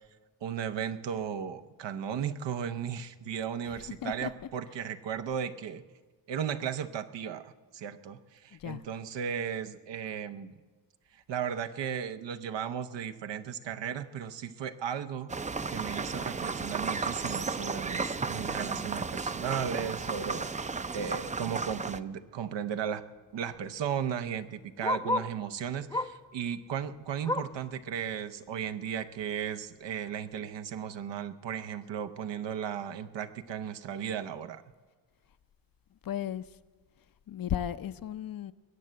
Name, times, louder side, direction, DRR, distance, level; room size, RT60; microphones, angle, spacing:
voice 1, 0.4-5.8 6.3-10.6 11.1-15.3 15.7-23.0 23.3-34.6, right 8 dB, 85° right, 9 dB, 0.8 m, -35 dB
voice 2, 3.6-4.3 8.5-8.8 36.0-36.5 37.3-38.5, left 10 dB, 55° left, 14 dB, 0.6 m, -35 dB
Costa Rican Oropendolo (Exotic Bird), 15.3-22.0, right 4 dB, 20° right, 0.4 m, -34 dB
Bark, 22.3-22.4 22.6-25.4 25.9-26.3 26.7-27.7 28.1-28.2 28.6-28.7 29.4-29.5, left 2 dB, 10° left, 0.7 m, -34 dB
21.0 x 8.2 x 7.7 m, 1.4 s
cardioid pair, 75°, 42 cm